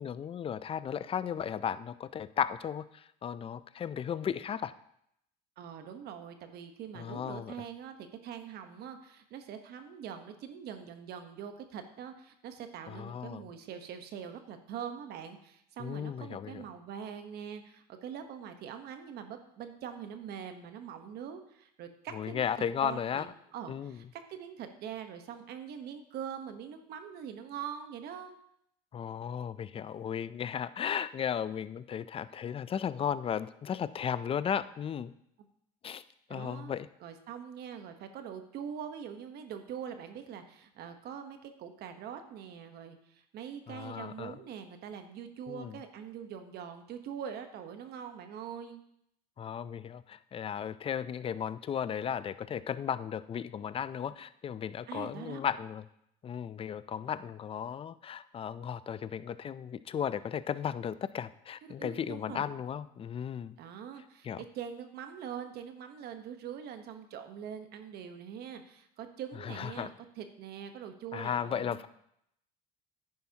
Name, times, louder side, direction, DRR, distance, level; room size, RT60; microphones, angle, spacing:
voice 1, 0.0-4.7 6.9-7.5 12.9-13.4 15.8-16.6 22.1-23.3 23.7-24.0 28.9-35.1 35.8-36.0 36.3-36.9 43.7-44.3 45.5-45.7 49.4-55.8 56.2-63.6 64.2-64.4 69.4-69.9 71.1-71.9, left 8 dB, 30° left, 15 dB, 0.4 m, -35 dB
voice 2, 5.6-7.9 8.2-28.3 36.3-36.7 37.0-48.8 54.9-55.4 61.6-62.5 63.6-71.9, right 8 dB, 65° right, 7 dB, 1.1 m, -43 dB
10.5 x 9.6 x 2.9 m, 0.74 s
supercardioid pair, 100°, 18 cm